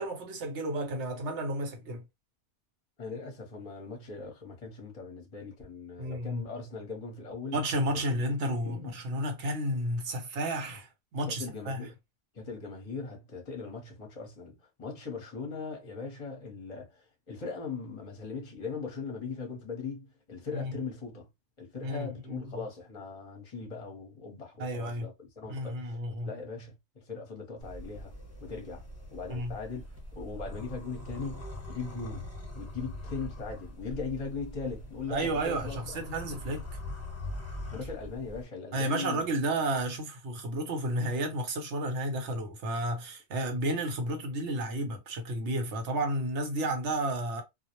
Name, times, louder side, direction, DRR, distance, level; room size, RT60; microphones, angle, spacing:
voice 1, 0.0-2.0 6.0-6.4 7.5-11.9 20.5-20.7 21.8-22.6 24.6-25.1 25.5-26.3 29.3-29.5 35.1-36.6 38.7-47.4, right 1 dB, 80° right, 1.0 m, -32 dB
voice 2, 3.0-7.6 7.9-8.0 8.6-9.0 11.4-11.9 12.3-21.3 21.6-26.0 26.2-26.7 27.1-28.1 28.4-29.8 30.1-36.0 37.7-39.3, left 4 dB, 35° left, 0.8 m, -39 dB
sound 1, 27.6-38.4, left 1 dB, 15° left, 1.0 m, -42 dB
2.4 x 2.0 x 2.8 m
omnidirectional pair, 1.2 m